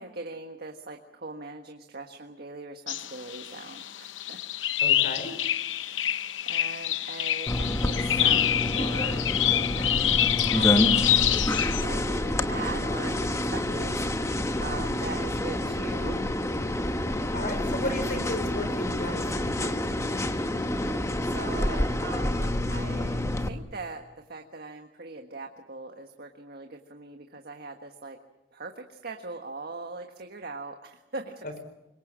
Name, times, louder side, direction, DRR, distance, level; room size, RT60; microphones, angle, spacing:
voice 1, 0.0-4.4 5.8-16.2 21.2-28.2 28.5-31.6, right 3 dB, 55° right, 4 dB, 1.6 m, -41 dB
sound 1, 2.9-11.8, left 12 dB, 85° left, 0.8 m, -26 dB
voice 2, 4.8-5.3 17.3-20.1, left 1 dB, 50° left, 9 dB, 4.7 m, -34 dB
sound 2, 7.5-23.5, left 1 dB, 15° left, 1.1 m, -28 dB
25.5 x 23.0 x 7.6 m, 0.94 s
head